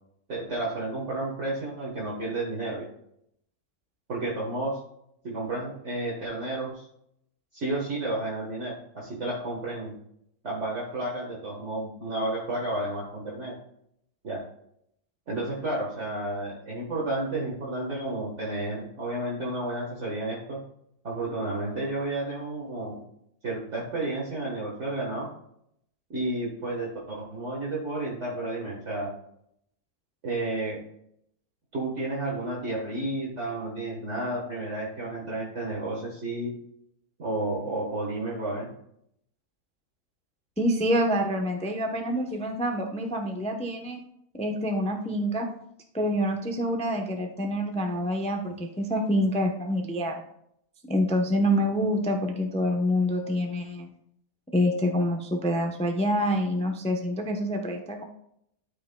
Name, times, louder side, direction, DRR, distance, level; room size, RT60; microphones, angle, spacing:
voice 1, 0.3-2.9 4.1-4.8 5.2-6.9 7.5-9.9 10.4-13.5 14.2-14.4 15.3-20.6 21.0-23.0 23.4-25.3 26.1-29.1 30.2-30.8 31.7-36.5 37.2-38.7, right 2 dB, 45° right, -4 dB, 1.7 m, -31 dB
voice 2, 40.6-44.0 44.3-45.5 45.9-50.2 50.9-53.9 54.5-58.0, equal, 10° left, 3 dB, 0.4 m, -26 dB
12.5 x 5.6 x 2.3 m, 0.73 s
omnidirectional pair, 1.7 m